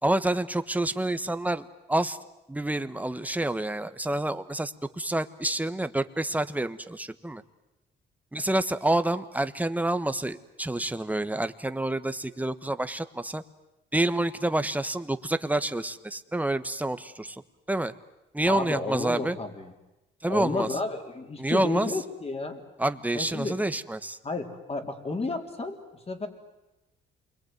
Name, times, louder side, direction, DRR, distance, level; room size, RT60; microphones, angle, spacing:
voice 1, 0.0-2.2 2.5-7.4 8.3-13.4 13.9-17.4 17.7-17.9 18.3-19.4 20.2-20.7 21.4-21.9 22.8-24.2, right 1 dB, 10° right, 11 dB, 1.3 m, -28 dB
voice 2, 18.4-19.7 20.3-22.6 23.1-23.6 24.2-25.8 26.1-26.3, left 3 dB, 30° left, 5 dB, 3.9 m, -32 dB
28.5 x 22.5 x 9.4 m, 0.98 s
cardioid pair, 90°, 20 cm